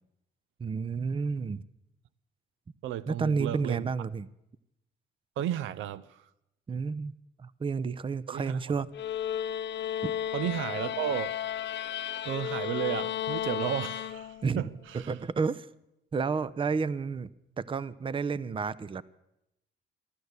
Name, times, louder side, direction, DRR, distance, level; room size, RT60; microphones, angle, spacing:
voice 1, 0.6-1.6 3.1-4.3 6.7-7.1 7.4-8.9 10.0-10.1 14.4-14.7 14.9-15.7 16.1-17.3 17.6-19.0, right 5 dB, 25° right, 0.6 m, -31 dB
voice 2, 2.8-3.9 5.4-6.2 8.3-8.6 10.3-11.4 12.2-15.1, right 11 dB, 80° right, 0.6 m, -33 dB
sound 1, 8.9-14.6, left 10 dB, 65° left, 0.7 m, -33 dB
14.5 x 12.0 x 8.0 m
cardioid pair, 90°, 20 cm